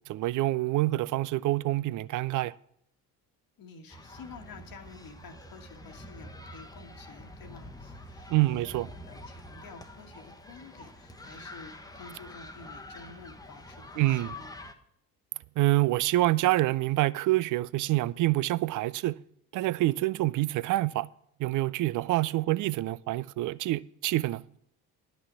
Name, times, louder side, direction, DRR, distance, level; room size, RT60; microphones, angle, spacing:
voice 1, 0.1-2.5 8.3-8.9 14.0-14.3 15.6-19.2 19.5-21.1 21.4-24.4, right 17 dB, 40° right, 0.5 m, -26 dB
voice 2, 3.6-8.6 9.0-14.5, left 4 dB, 45° left, 1.5 m, -50 dB
sound 1, 3.9-14.7, left 1 dB, 10° left, 1.2 m, -46 dB
11.0 x 6.2 x 7.2 m
figure-of-eight pair, 50°, 48 cm